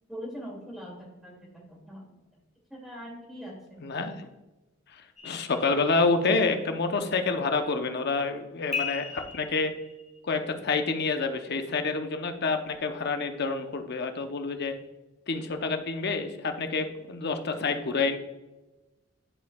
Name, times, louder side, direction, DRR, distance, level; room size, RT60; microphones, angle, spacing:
voice 1, 0.1-2.1 2.7-3.8, equal, ahead, -4 dB, 2.2 m, -42 dB
voice 2, 3.8-4.1 5.2-9.7 10.2-14.7 15.3-18.2, left 4 dB, 55° left, 6 dB, 0.7 m, -28 dB
sound 1, 5.2-6.4 8.7-10.2, left 6 dB, 35° left, 1.2 m, -37 dB
11.0 x 4.5 x 2.3 m, 1.1 s
head